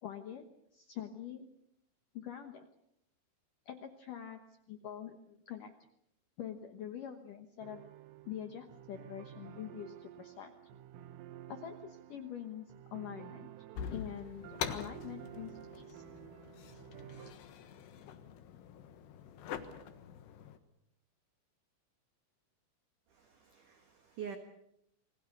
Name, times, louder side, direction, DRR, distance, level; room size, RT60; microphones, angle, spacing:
voice 1, 0.0-0.5 0.7-1.5 2.1-2.7 3.7-4.4 4.7-5.7 6.4-7.8 8.3-10.5 11.5-13.5 13.9-16.0, left 10 dB, 85° left, 6 dB, 1.8 m, -45 dB
sound 1, 7.6-17.3, right 13 dB, 85° right, 3.9 m, -52 dB
sound 2, 13.8-20.6, left 8 dB, 65° left, 3.2 m, -45 dB
voice 2, 23.1-24.4, right 8 dB, 60° right, 6 dB, 2.2 m, -46 dB
29.0 x 21.0 x 6.7 m, 0.78 s
omnidirectional pair, 5.8 m